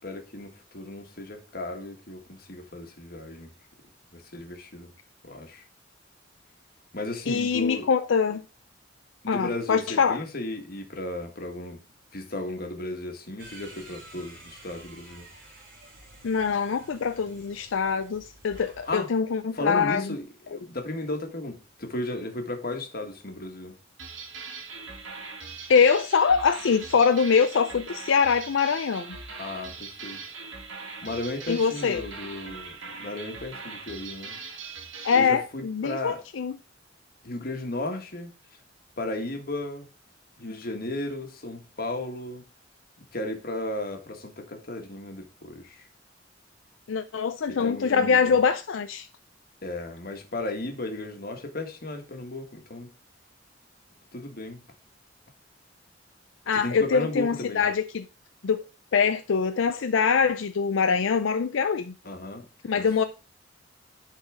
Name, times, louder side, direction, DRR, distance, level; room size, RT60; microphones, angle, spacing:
voice 1, 0.0-3.5 4.1-4.9 5.2-5.6 6.9-7.9 9.2-11.8 12.1-15.3 18.9-19.1 19.5-23.7 29.4-30.2 31.0-34.4 35.1-36.2 37.2-38.3 39.0-39.9 40.4-42.5 43.1-45.9 47.6-48.4 49.6-52.9 54.1-54.6 56.5-57.7 62.0-62.5 62.7-62.9, left 2 dB, 50° left, 1.6 m, -35 dB
voice 2, 7.3-8.4 9.3-10.2 16.2-20.1 25.7-29.2 31.5-32.1 35.0-36.5 46.9-49.1 56.5-58.0 58.4-58.6 58.9-61.9 62.7-63.0, left 6 dB, 80° left, 0.5 m, -23 dB
sound 1, 13.4-19.0, right 2 dB, 50° right, 4.4 m, -50 dB
sound 2, 24.0-35.3, right 4 dB, 85° right, 2.1 m, -41 dB
10.5 x 4.1 x 3.6 m
head